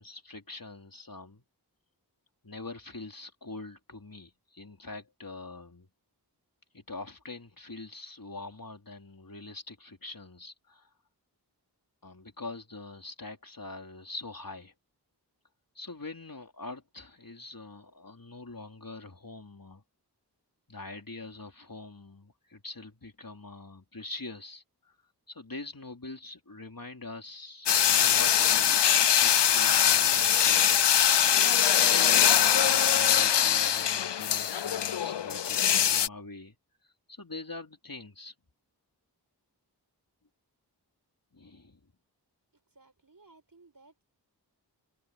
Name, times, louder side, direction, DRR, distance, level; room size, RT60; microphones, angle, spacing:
voice 1, 0.0-1.4 2.4-5.9 6.7-10.9 12.0-14.7 15.8-19.8 20.7-24.9 25.3-31.4 31.7-36.6 37.1-38.3 41.3-41.9, left 3 dB, 55° left, 3.6 m, -44 dB
sound 1, 27.7-36.1, left 9 dB, 85° left, 0.6 m, -23 dB
voice 2, 42.5-44.0, right 3 dB, 55° right, 5.6 m, -59 dB
wide cardioid pair, 45°, 41 cm